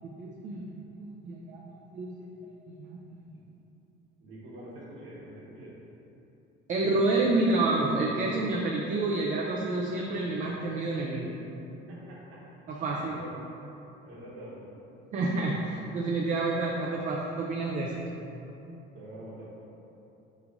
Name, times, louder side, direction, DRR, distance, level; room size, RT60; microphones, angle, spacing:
voice 1, 0.0-1.6 1.9-2.3 2.7-3.3 6.7-11.3 12.7-13.2 15.1-18.1, right 2 dB, 40° right, -2 dB, 0.4 m, -29 dB
voice 2, 4.2-5.8 11.9-13.4 14.0-14.7 18.9-19.5, right 1 dB, 80° right, -5 dB, 1.1 m, -46 dB
3.8 x 3.1 x 3.6 m, 2.9 s
cardioid pair, 125°, 21 cm